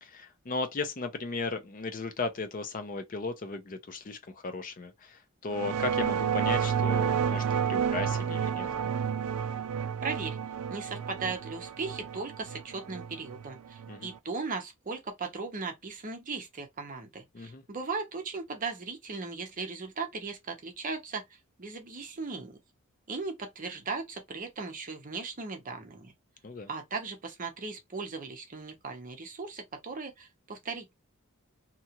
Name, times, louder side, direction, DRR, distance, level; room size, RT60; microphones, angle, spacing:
voice 1, 0.0-8.7 13.9-14.1 17.3-17.6 26.4-26.7, left 3 dB, 40° left, 0.5 m, -36 dB
sound 1, 5.5-14.2, right 7 dB, 90° right, 0.4 m, -30 dB
voice 2, 10.0-10.4 10.7-22.6 23.1-26.1 26.7-30.9, right 4 dB, 35° right, 0.7 m, -37 dB
2.8 x 2.4 x 2.8 m
head